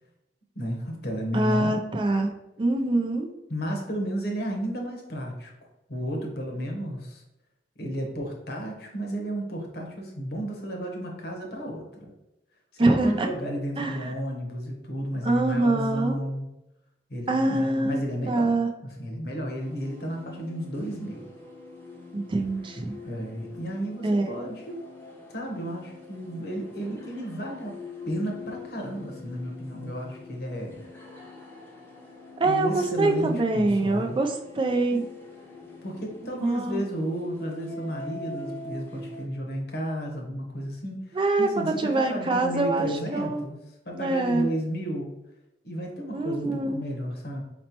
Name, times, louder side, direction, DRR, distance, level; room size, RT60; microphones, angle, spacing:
voice 1, 0.5-1.8 3.5-5.5 5.9-7.2 7.8-12.1 12.7-16.5 17.1-21.3 23.0-24.8 25.3-27.7 28.1-30.8 32.4-34.2 35.8-43.6 43.8-45.1 45.6-47.4, equal, 65° left, 1 dB, 1.0 m, -33 dB
voice 2, 1.3-3.3 12.8-13.3 13.8-14.1 15.2-16.1 17.3-18.7 22.1-23.0 24.0-24.3 32.4-35.0 36.3-36.8 41.1-43.4 43.9-44.5 46.1-46.9, right 2 dB, 30° right, 4 dB, 0.4 m, -25 dB
sound 1, 19.6-39.3, left 3 dB, 10° left, 0.8 m, -44 dB
4.3 x 4.2 x 2.9 m, 0.91 s
head